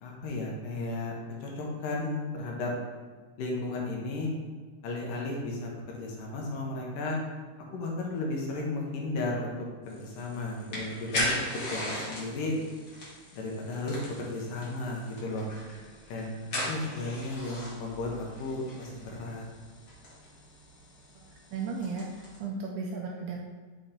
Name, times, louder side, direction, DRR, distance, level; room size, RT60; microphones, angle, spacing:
voice 1, 0.0-1.1 1.4-2.7 3.4-4.3 4.8-7.2 7.7-12.5 13.3-15.5 16.1-19.4, left 2 dB, 75° left, -2 dB, 2.6 m, -34 dB
sound 1, 9.9-22.4, left 1 dB, 45° left, 1.3 m, -39 dB
voice 2, 21.2-23.4, right 4 dB, 80° right, -1 dB, 1.8 m, -36 dB
6.5 x 4.5 x 3.8 m, 1.5 s
omnidirectional pair, 4.0 m